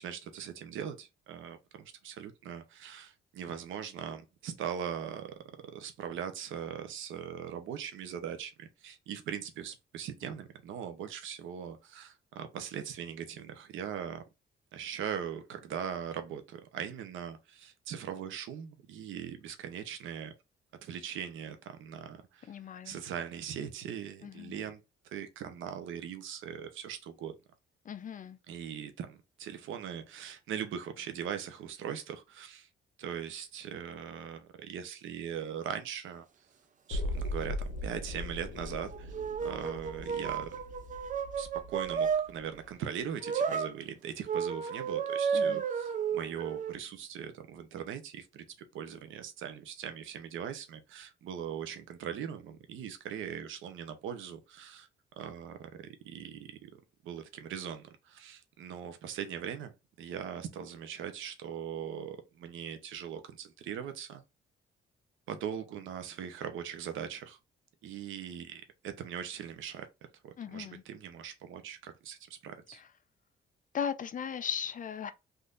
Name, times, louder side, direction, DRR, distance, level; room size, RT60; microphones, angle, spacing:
voice 1, 0.0-14.2 14.7-20.3 20.8-22.6 22.8-27.3 28.5-32.7 33.0-36.5 36.9-40.6 41.4-54.9 55.2-59.7 60.0-64.2 65.3-67.4 67.8-69.9 70.2-72.8, right 8 dB, 80° right, 0.7 m, -40 dB
voice 2, 22.5-23.0 24.2-24.6 27.8-28.4 45.3-45.6 70.4-70.8 72.7-72.8 73.7-75.1, left 8 dB, 40° left, 0.5 m, -37 dB
sound 1, 36.9-42.9 43.2-43.3, left 1 dB, 90° left, 0.6 m, -40 dB
sound 2, 38.7-42.3 43.2-43.7 44.3-46.7, right 7 dB, 40° right, 0.5 m, -32 dB
3.5 x 2.6 x 2.5 m
cardioid pair, 90°, 20 cm